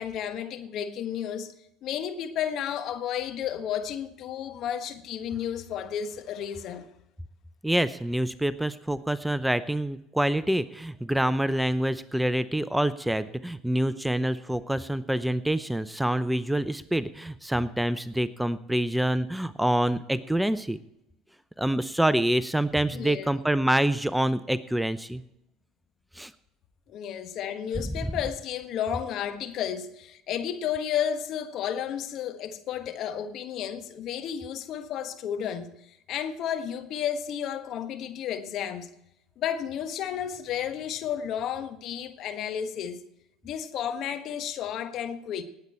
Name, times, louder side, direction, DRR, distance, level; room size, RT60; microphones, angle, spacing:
voice 1, 0.0-1.5 1.8-6.9 22.9-23.4 26.9-38.9 39.4-43.0 43.4-45.4, left 9 dB, 55° left, 1.3 m, -32 dB
voice 2, 7.6-20.8 21.6-25.2 26.2-26.3, right 1 dB, 5° right, 0.6 m, -26 dB
19.0 x 8.3 x 4.4 m
hypercardioid pair, 70°, 0 cm